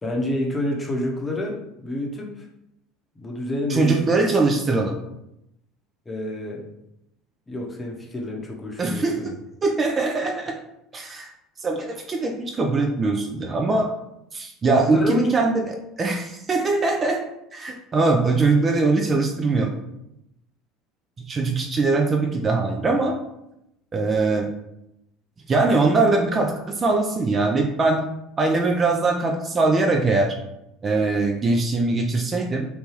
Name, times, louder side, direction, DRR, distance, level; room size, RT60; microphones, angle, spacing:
voice 1, 0.0-2.5 3.1-4.3 6.1-6.7 7.5-9.3 14.7-15.3, left 1 dB, 20° left, -1 dB, 0.7 m, -28 dB
voice 2, 3.7-5.0 8.8-9.3 9.6-10.6 10.9-11.3 11.6-13.9 14.3-17.2 17.5-19.7 21.3-23.2 23.9-24.5 25.5-28.0 28.4-30.3 30.8-32.7, right 3 dB, 30° right, 2 dB, 0.4 m, -21 dB
2.8 x 2.3 x 3.1 m, 0.84 s
hypercardioid pair, 85°, 0 cm